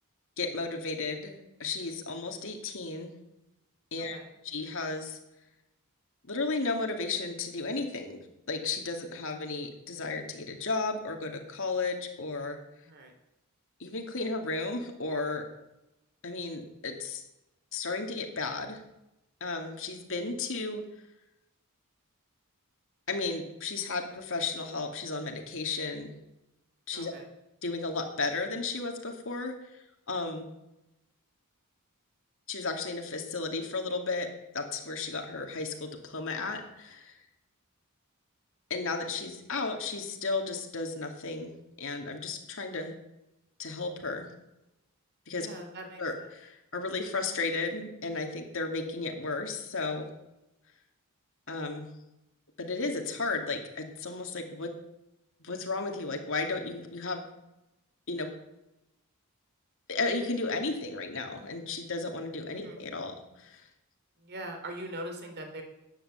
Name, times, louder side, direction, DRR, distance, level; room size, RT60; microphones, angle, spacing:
voice 1, 0.4-3.1 3.9-4.2 4.4-5.2 6.3-8.2 8.5-12.6 13.8-15.5 16.2-17.2 17.7-18.8 19.4-20.8 23.1-26.1 26.9-27.1 27.6-30.5 32.5-37.1 38.7-43.0 43.6-44.3 45.3-45.5 46.0-50.1 51.5-51.9 52.6-54.7 55.4-57.2 58.1-58.3 59.9-63.6, left 3 dB, 60° left, 3 dB, 2.5 m, -34 dB
voice 2, 4.0-4.3 12.8-13.1 26.9-27.2 45.3-46.3 62.5-62.8 64.2-65.6, right 1 dB, 50° right, 4 dB, 3.0 m, -42 dB
13.5 x 10.0 x 8.1 m, 0.91 s
head